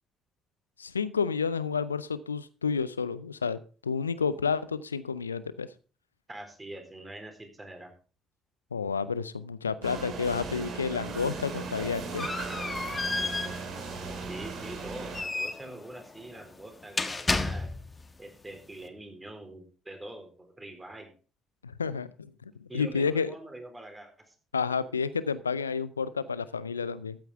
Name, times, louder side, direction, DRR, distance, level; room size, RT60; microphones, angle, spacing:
voice 1, 0.8-5.7 8.7-12.3 21.6-22.3 22.7-23.3 24.5-27.2, left 5 dB, 85° left, 17 dB, 0.5 m, -30 dB
voice 2, 6.3-7.9 14.3-17.7 18.2-21.1 22.7-24.3, right 1 dB, 20° right, 5 dB, 4.0 m, -44 dB
sound 1, 9.8-15.2, right 4 dB, 55° right, 2.8 m, -37 dB
sound 2, 11.4-18.0, left 3 dB, 25° left, 1.3 m, -33 dB
14.0 x 9.1 x 3.6 m, 0.37 s
figure-of-eight pair, 45°, 0 cm